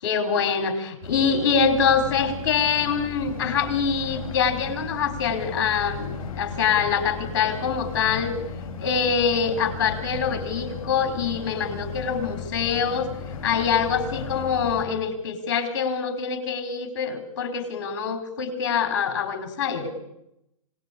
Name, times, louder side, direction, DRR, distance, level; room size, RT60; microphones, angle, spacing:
voice 1, 0.0-8.3 8.8-13.1 13.4-19.9, left 6 dB, 35° left, 7 dB, 4.7 m, -24 dB
sound 1, 1.0-14.8, left 5 dB, 15° left, 3.8 m, -35 dB
26.0 x 19.0 x 8.6 m, 0.82 s
hypercardioid pair, 175°, 19 cm